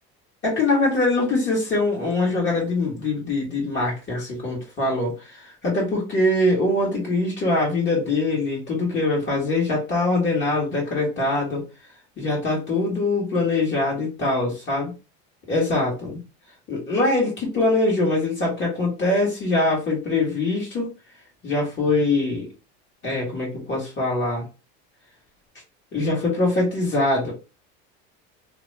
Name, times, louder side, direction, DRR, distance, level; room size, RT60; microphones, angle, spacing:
voice 1, 0.4-11.6 12.2-14.8 15.5-16.2 16.7-20.9 21.4-22.5 23.0-24.4 25.9-27.3, left 2 dB, 35° left, -3 dB, 1.6 m, -23 dB
2.9 x 2.3 x 3.2 m, 0.29 s
supercardioid pair, 120°, 32 cm